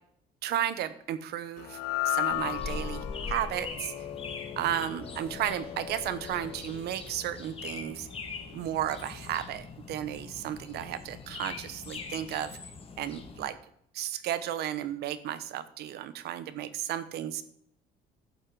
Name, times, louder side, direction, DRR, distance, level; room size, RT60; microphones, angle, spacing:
voice 1, 0.4-3.9 4.6-8.1 8.5-12.6 13.0-13.6 13.9-17.4, right 11 dB, 75° right, 14 dB, 1.0 m, -33 dB
sound 1, 1.6-8.0, left 14 dB, 85° left, 1.4 m, -36 dB
sound 2, 2.3-13.5, left 4 dB, 35° left, 1.8 m, -42 dB
11.5 x 8.0 x 4.8 m, 0.70 s
cardioid pair, 110°, 17 cm